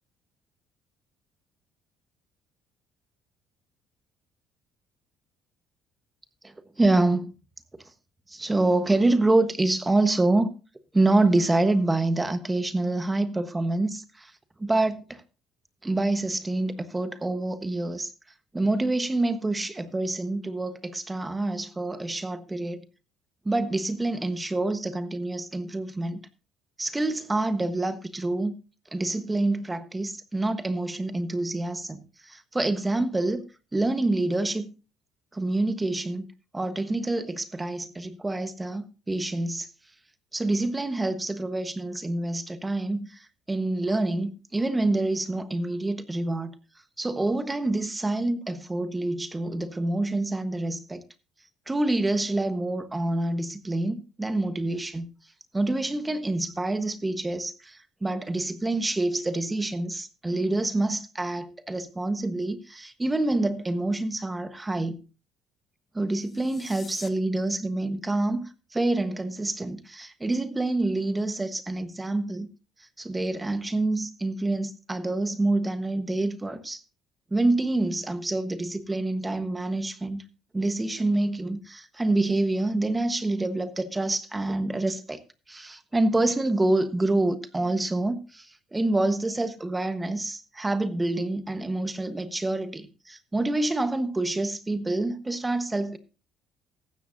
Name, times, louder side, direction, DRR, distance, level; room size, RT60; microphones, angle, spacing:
voice 1, 6.4-7.3 8.3-10.5 10.9-14.3 14.6-15.2 15.8-18.1 18.5-22.8 23.4-26.2 26.8-28.5 28.9-33.4 33.7-34.7 35.3-36.3 36.5-39.7 40.3-46.5 47.0-51.0 51.7-55.1 55.5-65.0 65.9-72.5 72.8-76.8 77.3-80.2 80.5-85.2 85.5-96.0, right 2 dB, 15° right, 1.2 m, -27 dB
sound 1, 66.1-67.1, left 6 dB, 45° left, 1.6 m, -46 dB
15.0 x 11.0 x 2.7 m
supercardioid pair, 80°, 0 cm